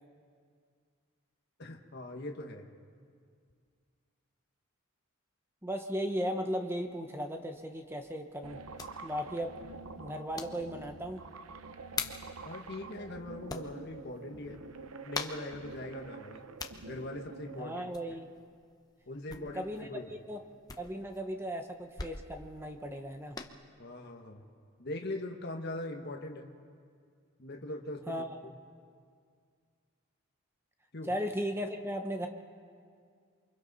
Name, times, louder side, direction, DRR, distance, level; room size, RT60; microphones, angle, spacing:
voice 1, 1.6-2.7 12.4-14.6 15.0-16.4 16.8-17.7 19.1-20.1 23.8-24.4 24.8-26.5 27.4-28.5 30.9-31.1, left 1 dB, 50° left, 2 dB, 1.3 m, -41 dB
voice 2, 5.6-8.6 9.0-9.5 10.0-11.2 17.6-18.3 19.3-20.4 20.8-23.4 28.1-28.4 31.0-32.3, equal, 10° right, 5 dB, 0.9 m, -36 dB
sound 1, 6.8-23.5, left 4 dB, 20° left, 0.9 m, -46 dB
sound 2, 8.4-17.9, right 4 dB, 90° right, 0.8 m, -47 dB
28.5 x 24.5 x 4.1 m, 2.1 s
head